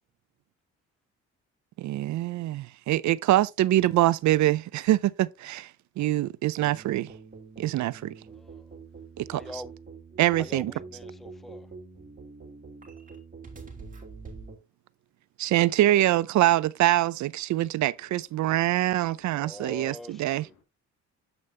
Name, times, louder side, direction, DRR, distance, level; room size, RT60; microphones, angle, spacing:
voice 1, 1.8-5.7 6.0-7.1 7.6-8.1 9.3-9.6 10.2-10.7 15.4-20.5, right 15 dB, 70° right, 0.5 m, -24 dB
sound 1, 6.6-14.5, right 4 dB, 25° right, 3.0 m, -45 dB
voice 2, 8.3-8.7 9.3-9.7 10.4-11.7 19.3-20.5, left 2 dB, ahead, 0.5 m, -43 dB
voice 3, 18.4-18.8 19.3-20.6, left 7 dB, 80° left, 2.5 m, -59 dB
8.1 x 5.2 x 3.3 m
cardioid pair, 90°, 30 cm